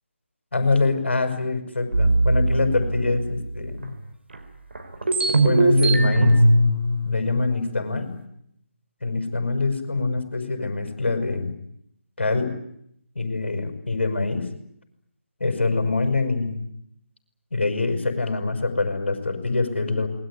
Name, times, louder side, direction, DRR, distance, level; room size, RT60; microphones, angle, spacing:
voice 1, 0.5-3.9 5.4-6.4 7.0-8.1 9.0-11.5 12.2-12.5 13.1-14.5 15.4-16.6 17.5-20.1, left 3 dB, 55° left, 7 dB, 6.4 m, -24 dB
sound 1, 1.9-3.8 4.3-4.4 4.7-8.2, right 1 dB, 55° right, 4.9 m, -21 dB
27.5 x 21.0 x 9.9 m, 0.74 s
figure-of-eight pair, 155°, 7 cm